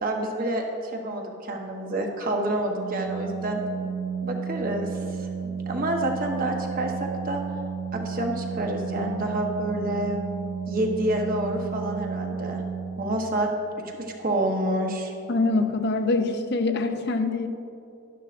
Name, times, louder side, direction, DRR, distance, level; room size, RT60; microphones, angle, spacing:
voice 1, 0.0-3.6 4.2-7.4 7.9-10.2 10.7-12.6 13.0-13.5 14.0-15.1, right 1 dB, 40° right, 1 dB, 1.0 m, -28 dB
Organ, 2.7-13.5, right 6 dB, 80° right, 1.2 m, -33 dB
voice 2, 15.3-17.5, left 3 dB, 50° left, 7 dB, 0.6 m, -24 dB
11.5 x 11.5 x 2.5 m, 2.8 s
head